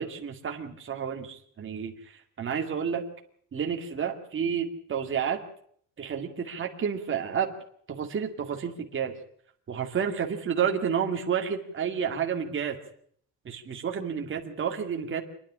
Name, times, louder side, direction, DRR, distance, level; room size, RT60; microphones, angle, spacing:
voice 1, 0.0-3.0 3.5-5.4 6.0-7.5 7.9-9.1 9.7-12.8 13.4-15.2, right 7 dB, 35° right, 2 dB, 2.3 m, -30 dB
27.0 x 10.0 x 9.8 m, 0.63 s
cardioid pair, 180°, 37 cm